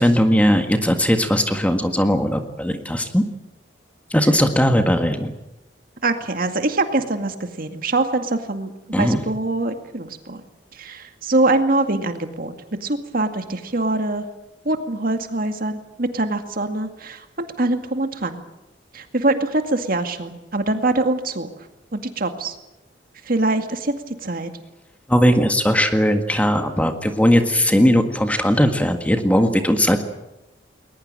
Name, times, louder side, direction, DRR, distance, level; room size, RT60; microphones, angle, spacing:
voice 1, 0.0-3.2 4.1-5.3 8.9-9.2 25.1-30.0, equal, 10° left, 6 dB, 1.7 m, -18 dB
voice 2, 6.0-8.7 9.0-10.4 10.7-12.5 12.8-14.3 14.6-18.4 18.9-21.5 21.9-22.6 23.2-23.9 24.2-24.5, right 2 dB, 50° right, 7 dB, 2.1 m, -23 dB
21.0 x 20.5 x 8.9 m, 0.93 s
head